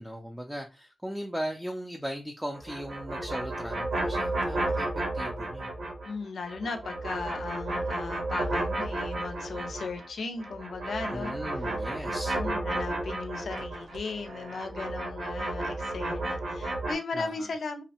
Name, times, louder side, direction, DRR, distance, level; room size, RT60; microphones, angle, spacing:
voice 1, 0.0-4.9 5.1-5.7 11.1-12.4 17.1-17.5, equal, 5° right, 0.3 m, -37 dB
sound 1, 2.5-6.1 6.4-10.1 10.4-16.9, right 2 dB, 75° right, 0.8 m, -33 dB
voice 2, 6.0-11.7 12.1-17.8, left 4 dB, 75° left, 0.4 m, -37 dB
2.6 x 2.0 x 2.8 m
wide cardioid pair, 125°, 0 cm